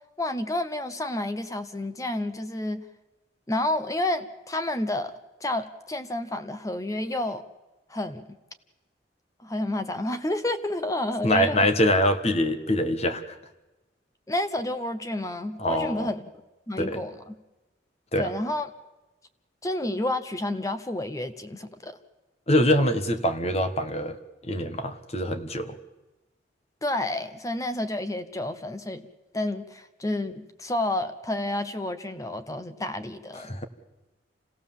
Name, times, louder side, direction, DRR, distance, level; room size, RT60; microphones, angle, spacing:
voice 1, 0.2-2.9 3.5-5.1 5.4-7.4 7.9-8.2 9.4-11.7 14.3-16.2 16.7-17.3 18.2-18.7 19.6-22.0 26.8-29.1 29.3-33.5, left 1 dB, 20° left, 10 dB, 0.8 m, -30 dB
voice 2, 11.2-13.4 15.6-16.1 16.8-17.0 18.1-18.3 22.5-24.2 24.4-25.8 33.4-33.7, left 1 dB, 35° left, 7 dB, 1.4 m, -24 dB
27.0 x 16.5 x 7.3 m, 1.1 s
head